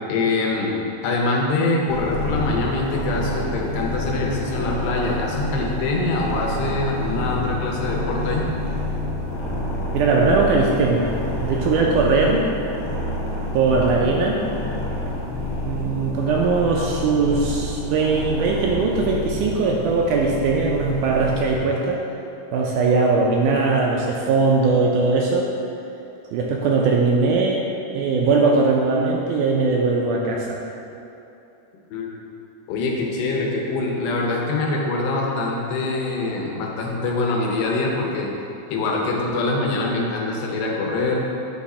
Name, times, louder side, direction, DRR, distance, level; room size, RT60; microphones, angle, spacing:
voice 1, 0.1-0.7 1.0-8.5 31.9-32.1 32.7-38.3 38.7-41.3, left 2 dB, 90° left, -1 dB, 2.6 m, -24 dB
sound 1, 1.9-21.6, left 1 dB, 55° left, 1.9 m, -28 dB
voice 2, 9.9-12.5 13.5-14.4 15.7-22.0 22.5-25.5 26.3-27.6 27.9-30.6, right 4 dB, 80° right, -2 dB, 1.9 m, -20 dB
8.5 x 3.6 x 4.2 m, 2.8 s
omnidirectional pair, 3.9 m